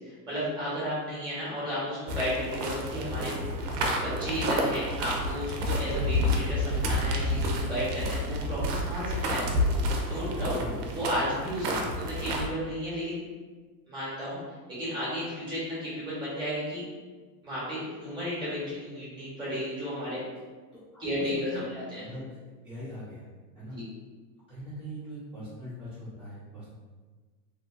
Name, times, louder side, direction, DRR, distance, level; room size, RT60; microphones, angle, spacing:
voice 1, 0.0-3.3 4.0-9.5 10.1-10.6 10.9-11.7 11.9-13.2 13.9-14.4 14.7-16.8 17.4-20.2 21.0-22.0 23.7-23.8, equal, 10° right, -9 dB, 0.9 m, -33 dB
sound 1, 2.1-12.5, left 1 dB, 75° right, 0.6 m, -29 dB
voice 2, 10.3-10.8 11.6-11.9 20.7-21.6 22.0-22.3 22.6-23.2 23.5-23.8 24.5-26.7, equal, 10° left, -14 dB, 0.6 m, -42 dB
2.9 x 2.4 x 2.4 m, 1.4 s
supercardioid pair, 160°, 48 cm